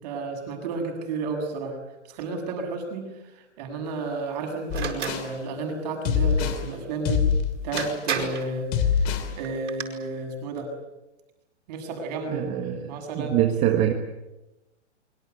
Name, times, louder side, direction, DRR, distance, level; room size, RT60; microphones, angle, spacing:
voice 1, 0.0-1.8 2.1-3.1 3.6-7.2 7.6-10.7 11.7-12.5 12.9-13.4, right 3 dB, 35° right, 5 dB, 7.4 m, -32 dB
sound 1, 4.7-5.3 6.1-6.6 7.1-8.0 8.7-9.3, left 7 dB, 25° left, 3.0 m, -24 dB
sound 2, 4.7-5.2 7.3-7.4 7.8-8.5 9.4-9.8, right 6 dB, 80° right, 6.9 m, -30 dB
voice 2, 12.3-13.9, right 11 dB, 20° right, 5 dB, 1.6 m, -24 dB
26.0 x 24.5 x 8.3 m, 0.98 s
hypercardioid pair, 160°, 36 cm